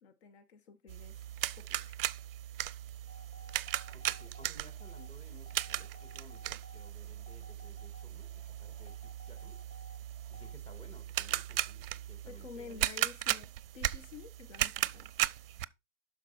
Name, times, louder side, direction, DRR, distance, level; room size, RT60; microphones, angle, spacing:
voice 1, 0.0-1.9 12.2-15.3, left 6 dB, 60° left, 1.1 m, -51 dB
sound 1, 0.9-15.7, right 14 dB, 50° right, 0.5 m, -37 dB
sound 2, 3.1-10.5, left 2 dB, 35° left, 1.8 m, -59 dB
voice 2, 3.9-9.6 10.3-12.8, left 2 dB, 15° left, 2.1 m, -57 dB
12.0 x 4.7 x 4.3 m
figure-of-eight pair, 105°, 37 cm